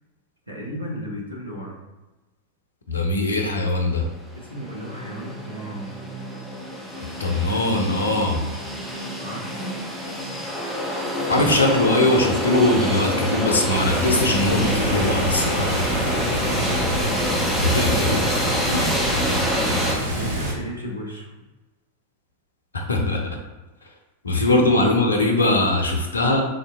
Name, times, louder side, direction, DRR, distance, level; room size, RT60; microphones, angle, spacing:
voice 1, 0.5-1.8 4.4-5.9 9.2-9.8 15.6-18.3 19.6-21.3 24.4-24.5, equal, 85° right, -3 dB, 0.7 m, -35 dB
voice 2, 2.9-4.1 7.2-8.5 11.3-15.9 17.6-18.2 18.7-19.0 19.6-19.9 22.7-23.2 24.2-26.4, left 2 dB, 75° left, 2 dB, 0.5 m, -21 dB
sound 1, 4.0-4.1 4.3-19.9, equal, ahead, 0.6 m, -27 dB
Water, 13.7-20.5, equal, 60° right, 1.2 m, -26 dB
3.7 x 2.7 x 2.4 m, 1.1 s
figure-of-eight pair, 90°, 0 cm